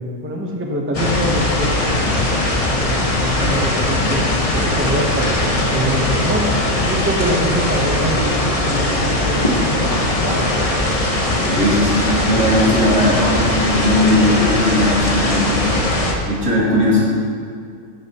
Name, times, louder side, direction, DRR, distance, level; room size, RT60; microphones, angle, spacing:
voice 1, 0.2-2.3 2.8-4.2 4.5-6.5 6.8-10.7, right 1 dB, 10° right, 0 dB, 0.8 m, -25 dB
sound 1, 0.9-16.1, left 1 dB, 25° left, 1.0 m, -19 dB
voice 2, 11.5-15.6 15.9-17.0, left 1 dB, 70° right, -7 dB, 3.2 m, -18 dB
12.0 x 9.7 x 3.0 m, 2.2 s
omnidirectional pair, 1.5 m